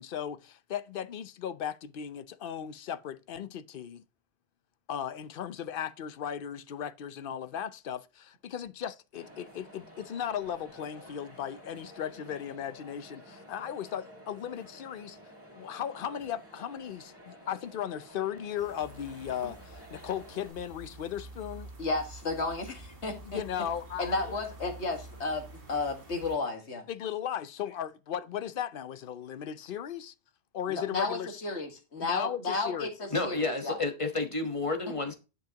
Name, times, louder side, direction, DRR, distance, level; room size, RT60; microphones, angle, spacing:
voice 1, 0.0-4.0 4.9-15.2 15.5-21.7 23.2-24.4 26.9-30.1 30.5-31.4 32.0-32.9, left 9 dB, 60° left, 0.8 m, -36 dB
sound 1, 9.1-20.5, equal, 10° right, 5.0 m, -51 dB
sound 2, 18.6-26.4, right 2 dB, 55° right, 2.1 m, -48 dB
voice 2, 21.8-23.4 24.0-26.9 30.7-33.8, left 3 dB, 80° left, 2.0 m, -33 dB
voice 3, 33.1-35.2, left 3 dB, 30° left, 1.2 m, -30 dB
10.0 x 5.7 x 2.9 m
omnidirectional pair, 1.1 m